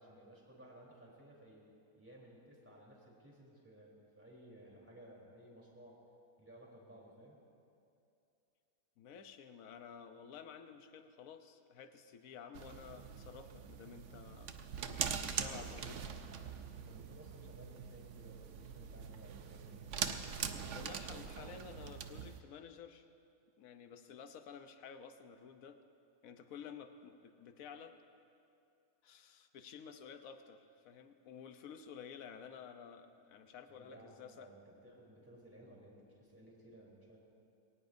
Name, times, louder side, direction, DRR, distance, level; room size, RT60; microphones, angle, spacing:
voice 1, 0.0-1.7 1.9-6.0 6.4-7.4 16.7-19.8 33.7-37.2, right 1 dB, 10° right, -4 dB, 3.6 m, -58 dB
voice 2, 9.0-14.6 15.2-16.0 20.7-23.1 23.6-25.8 26.2-28.0 29.0-34.5, left 7 dB, 70° left, 8 dB, 1.2 m, -52 dB
sound 1, 12.5-22.4, right 7 dB, 60° right, 0.9 m, -43 dB
22.5 x 18.5 x 2.7 m, 2.6 s
omnidirectional pair, 1.6 m